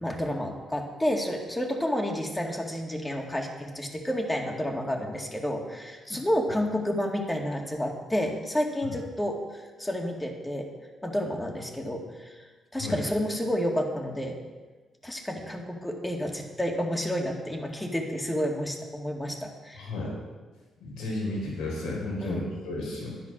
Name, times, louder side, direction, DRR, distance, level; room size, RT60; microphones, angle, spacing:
voice 1, 0.0-10.7 11.0-12.4 12.7-14.4 15.0-19.9 22.2-22.4, equal, 10° left, 1 dB, 2.2 m, -30 dB
voice 2, 19.8-20.1 20.8-23.2, left 2 dB, 85° left, -2 dB, 4.8 m, -33 dB
11.5 x 10.0 x 6.2 m, 1.3 s
cardioid pair, 90°, 0 cm